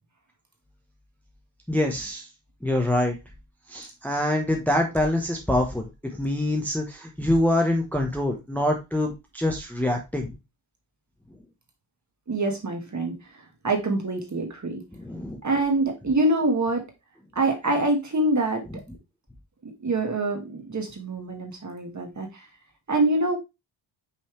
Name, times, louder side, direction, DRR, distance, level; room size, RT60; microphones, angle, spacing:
voice 1, 1.7-2.3 2.6-3.2 3.7-10.3 14.9-15.4 18.7-18.8, left 1 dB, 5° left, 1 dB, 0.8 m, -25 dB
voice 2, 12.3-13.2 13.6-14.8 15.4-16.8 17.3-18.6 19.6-22.3 22.9-23.4, right 2 dB, 35° right, 3 dB, 1.5 m, -25 dB
5.6 x 5.3 x 3.1 m, 0.23 s
wide cardioid pair, 180°, 50 cm